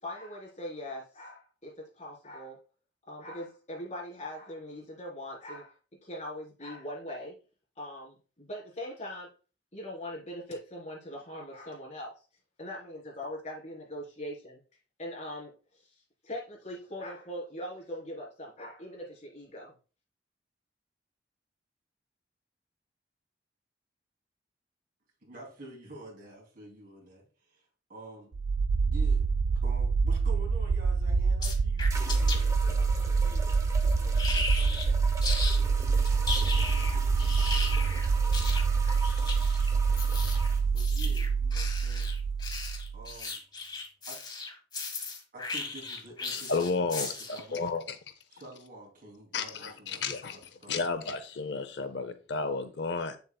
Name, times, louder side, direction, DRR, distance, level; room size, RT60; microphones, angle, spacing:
voice 1, 0.0-2.6 3.1-5.7 6.0-7.4 7.8-9.3 9.7-12.1 12.6-14.6 15.0-19.7, left 1 dB, 40° left, 3.6 m, -41 dB
voice 2, 25.2-28.3 28.8-36.6 40.7-42.1 42.9-43.4 44.1-44.2 45.3-47.7 48.3-50.8, right 1 dB, 55° right, 3.0 m, -49 dB
sound 1, 28.3-43.1, right 5 dB, 70° right, 0.4 m, -26 dB
sound 2, 31.1-31.2 31.9-40.7, right 2 dB, 20° right, 0.8 m, -42 dB
sound 3, 31.4-32.4 34.2-34.9 35.2-35.6 36.0-47.5, left 3 dB, 25° left, 1.3 m, -36 dB
voice 3, 46.3-47.1 47.5-47.9 49.3-50.4 50.7-53.2, left 4 dB, 70° left, 0.7 m, -32 dB
8.1 x 7.0 x 2.3 m
head